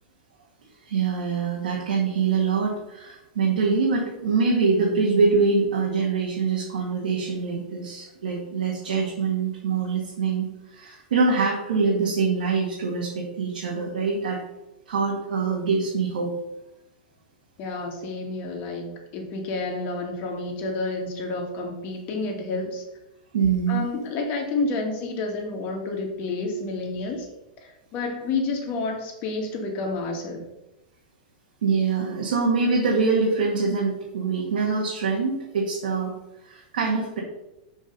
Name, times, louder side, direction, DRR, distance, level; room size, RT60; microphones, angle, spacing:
voice 1, 0.9-10.5 10.7-14.4 14.9-16.3 23.3-23.9 31.6-36.1 36.4-37.2, right 4 dB, 80° right, -3 dB, 2.1 m, -24 dB
voice 2, 17.6-22.8 23.7-27.3 27.6-30.5, left 3 dB, 40° left, 2 dB, 2.1 m, -30 dB
6.6 x 5.2 x 5.3 m, 0.90 s
hypercardioid pair, 130°, 5 cm